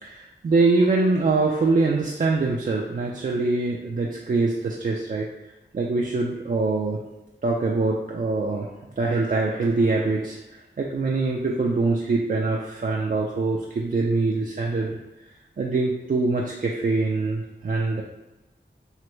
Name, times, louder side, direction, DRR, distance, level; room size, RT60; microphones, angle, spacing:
voice 1, 0.0-5.3 5.7-7.0 7.4-8.7 9.0-15.0 15.6-18.0, right 3 dB, 45° right, -1 dB, 0.4 m, -24 dB
3.2 x 2.5 x 3.0 m, 1.0 s
wide cardioid pair, 75°, 19 cm